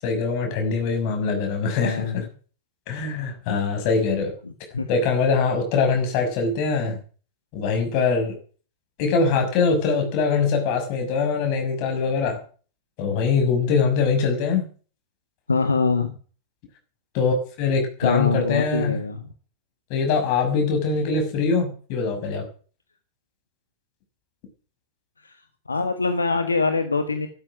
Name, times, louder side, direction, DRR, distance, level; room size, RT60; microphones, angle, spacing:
voice 1, 0.0-2.2 2.9-4.3 4.9-7.0 7.5-8.4 9.0-12.4 13.0-14.7 17.1-19.0 19.9-22.5, left 4 dB, 45° left, 4 dB, 6.4 m, -23 dB
voice 2, 1.8-2.3 4.7-4.9 15.5-16.1 18.0-19.2 25.2-25.4 25.7-27.3, left 4 dB, 80° left, 8 dB, 1.6 m, -23 dB
14.5 x 12.5 x 6.2 m, 0.40 s
figure-of-eight pair, 90°, 0 cm